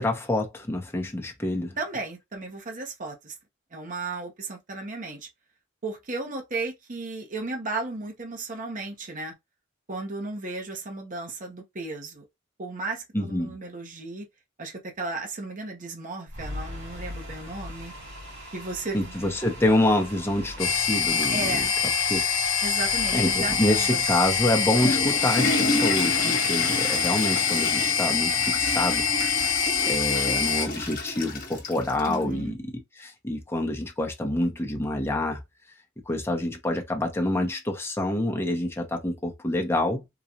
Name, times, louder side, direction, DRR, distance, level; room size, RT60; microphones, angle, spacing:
voice 1, 0.0-1.8 13.1-13.5 18.9-21.6 22.1-22.2 23.1-29.1 29.9-35.4 36.1-40.0, left 1 dB, 10° left, 0.8 m, -27 dB
voice 2, 1.8-3.3 3.7-5.3 5.8-9.3 9.9-12.2 12.6-14.3 14.6-17.9 18.5-19.2 21.3-21.7 22.6-24.0 32.1-32.6, right 3 dB, 40° right, 0.9 m, -34 dB
sound 1, 16.3-28.4, equal, 70° right, 2.5 m, -42 dB
sound 2, 20.6-30.7, left 6 dB, 70° left, 0.8 m, -25 dB
Water / Toilet flush, 24.4-32.2, left 2 dB, 45° left, 1.2 m, -31 dB
3.9 x 2.3 x 2.9 m
head